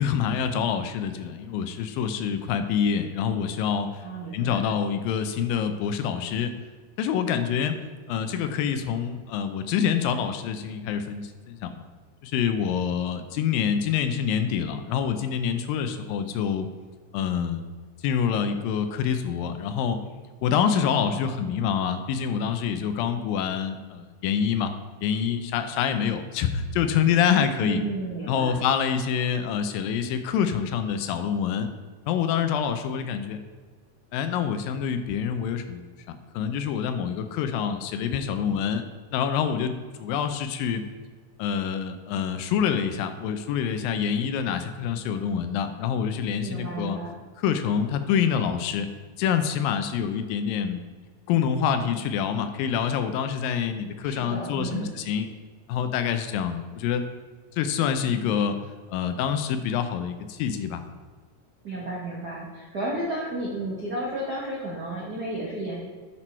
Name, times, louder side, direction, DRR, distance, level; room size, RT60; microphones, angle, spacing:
voice 1, 0.0-4.0 4.3-6.5 7.0-7.8 8.1-11.8 12.2-16.7 17.1-17.7 18.0-20.0 20.4-24.7 25.0-27.8 28.3-31.7 32.1-33.4 34.1-38.8 39.1-39.7 40.0-40.8 41.4-47.0 47.4-48.9 49.2-50.8 51.3-55.3 55.7-57.1 57.5-58.6 58.9-60.8, left 7 dB, 80° left, 8 dB, 2.3 m, -26 dB
voice 2, 4.0-4.7 20.6-21.3 27.6-28.6 46.4-47.1 54.0-55.0 61.6-65.8, right 2 dB, 60° right, -6 dB, 1.0 m, -32 dB
10.0 x 4.5 x 4.4 m, 1.5 s
omnidirectional pair, 4.1 m